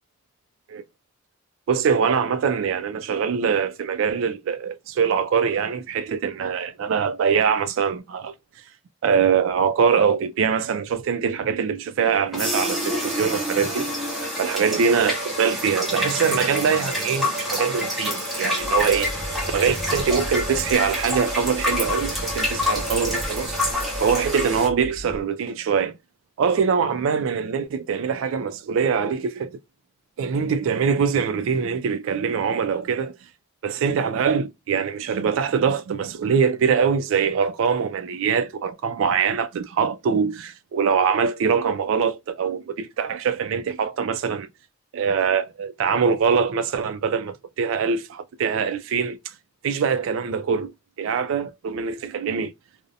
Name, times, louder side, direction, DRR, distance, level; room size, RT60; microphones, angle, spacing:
voice 1, 1.7-8.3 9.0-13.9 14.4-19.1 19.5-23.7 24.0-25.9 26.4-29.6 30.2-33.2 33.6-44.5 44.9-49.2 49.6-50.7 51.0-52.5, right 6 dB, 70° right, 0.3 m, -23 dB
sound 1, 12.3-24.7, left 1 dB, ahead, 0.7 m, -27 dB
sound 2, 18.6-25.2, right 1 dB, 35° left, 1.1 m, -36 dB
2.6 x 2.0 x 2.5 m
head